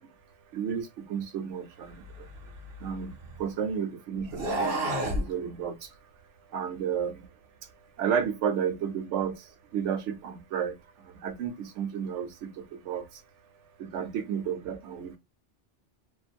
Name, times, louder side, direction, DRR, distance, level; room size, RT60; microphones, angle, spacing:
voice 1, 0.5-2.3 2.8-5.9 6.5-7.3 8.0-13.2 13.8-15.2, right 7 dB, 90° right, 1.0 m, -32 dB
sound 1, 2.0-3.5 4.2-5.3, right 1 dB, 60° right, 1.0 m, -31 dB
2.6 x 2.5 x 2.4 m
omnidirectional pair, 1.2 m